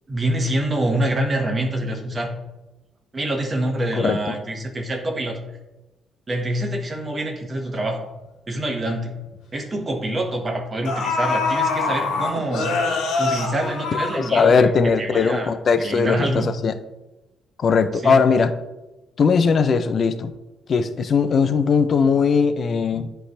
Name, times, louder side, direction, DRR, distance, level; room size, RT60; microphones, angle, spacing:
voice 1, 0.1-2.3 3.1-5.4 6.3-8.1 8.5-9.2 9.5-12.7 13.2-15.5 15.8-16.5 18.0-18.2, right 1 dB, 30° right, 2 dB, 1.2 m, -25 dB
voice 2, 4.0-4.4 14.2-16.8 17.6-18.5 19.2-20.3 20.7-23.1, left 5 dB, 50° left, 10 dB, 0.5 m, -19 dB
sound 1, 8.7-8.8 9.2-9.3 10.4-10.5 10.8-14.8 15.1-15.2, left 4 dB, 90° left, 1.2 m, -24 dB
9.8 x 3.3 x 3.2 m, 1.0 s
cardioid pair, 90°, 0 cm